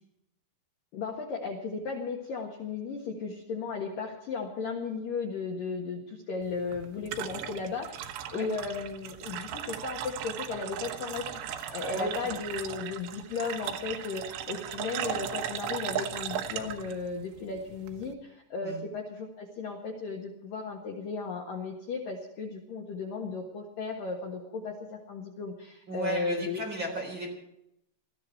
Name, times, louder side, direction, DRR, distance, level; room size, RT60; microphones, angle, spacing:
voice 1, 0.9-11.3 11.7-26.6, left 4 dB, 60° left, 0 dB, 2.6 m, -35 dB
sound 1, 6.4-18.1, right 10 dB, 85° right, 3.8 m, -37 dB
voice 2, 11.9-12.3 18.6-18.8 25.9-27.3, right 2 dB, 25° right, 0 dB, 4.3 m, -35 dB
20.5 x 14.5 x 4.5 m, 0.81 s
omnidirectional pair, 5.7 m